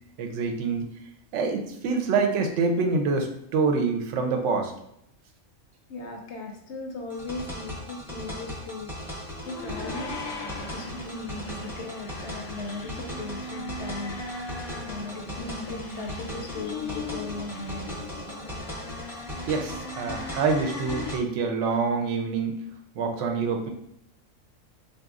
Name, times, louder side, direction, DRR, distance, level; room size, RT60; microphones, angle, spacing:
voice 1, 0.2-0.9 1.3-4.7 19.5-22.5 23.0-23.7, right 4 dB, 65° right, 4 dB, 0.8 m, -26 dB
voice 2, 5.9-8.9 9.4-10.2 10.6-14.2 14.8-17.9 23.0-23.3, left 3 dB, 65° left, 2 dB, 0.8 m, -38 dB
sound 1, 7.1-21.2, equal, ahead, 0.6 m, -38 dB
sound 2, 9.3-21.1, left 2 dB, 85° left, 1.0 m, -39 dB
4.0 x 2.6 x 2.4 m, 0.74 s
omnidirectional pair, 1.4 m